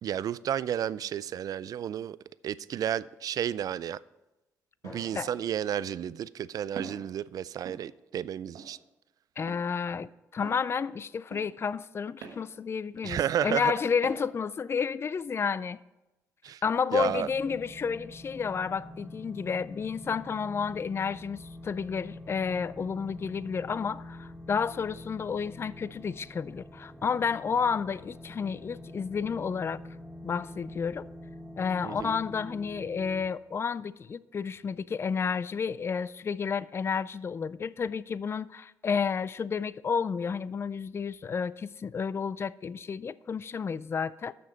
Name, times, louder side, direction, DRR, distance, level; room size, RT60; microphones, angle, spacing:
voice 1, 0.0-2.2 2.4-4.0 4.8-8.8 13.0-13.7 16.4-16.6 16.9-17.3 31.8-32.2, right 10 dB, 60° right, 0.3 m, -32 dB
Drum, 4.8-7.1, left 1 dB, 55° left, 3.5 m, -53 dB
Walk footsteps, 6.8-7.0 7.6-7.8 8.5-8.7 9.5-9.6 10.4-10.6 11.3-11.5 12.2-12.4 13.2-13.4 14.0-14.2, right 6 dB, 80° right, 1.2 m, -42 dB
voice 2, 9.4-15.8 16.6-29.8 30.2-31.1 31.6-44.3, left 6 dB, 35° left, 0.3 m, -31 dB
sound 1, 17.0-33.2, left 1 dB, ahead, 1.1 m, -46 dB
6.9 x 6.4 x 7.3 m
supercardioid pair, 65°, 7 cm